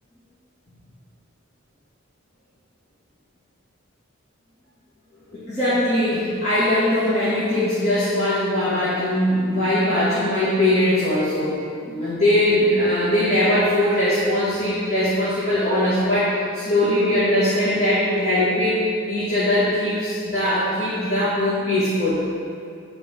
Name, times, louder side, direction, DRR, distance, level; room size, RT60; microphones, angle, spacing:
voice 1, 5.3-11.5 11.8-18.8 19.1-22.2, left 1 dB, 35° left, -12 dB, 2.0 m, -21 dB
9.8 x 4.8 x 5.3 m, 2.4 s
head